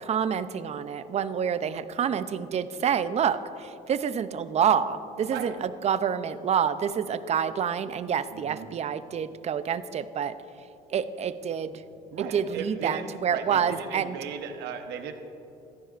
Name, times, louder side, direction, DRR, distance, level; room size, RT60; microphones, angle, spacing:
voice 1, 0.1-10.4 10.9-11.8 12.2-14.2, right 7 dB, 40° right, 13 dB, 0.5 m, -28 dB
voice 2, 5.3-5.6 8.3-8.8 11.8-11.9 12.1-15.1, right 7 dB, 85° right, 6 dB, 1.0 m, -37 dB
15.0 x 13.5 x 2.5 m, 2.8 s
cardioid pair, 110°, 17 cm